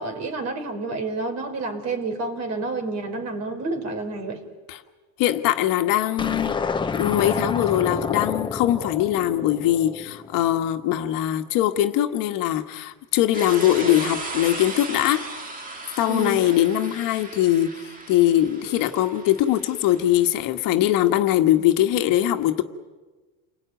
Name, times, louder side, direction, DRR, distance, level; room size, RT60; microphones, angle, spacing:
voice 1, 0.0-4.4 16.1-16.4, right 3 dB, 40° right, 4.5 m, -29 dB
voice 2, 5.2-6.6 6.9-15.3 16.0-22.6, left 12 dB, 55° left, 1.7 m, -21 dB
sound 1, 6.2-10.6, left 5 dB, 10° left, 1.1 m, -29 dB
sound 2, 13.3-20.3, right 2 dB, 20° right, 2.0 m, -37 dB
29.5 x 21.0 x 9.3 m
cardioid pair, 150°, 39 cm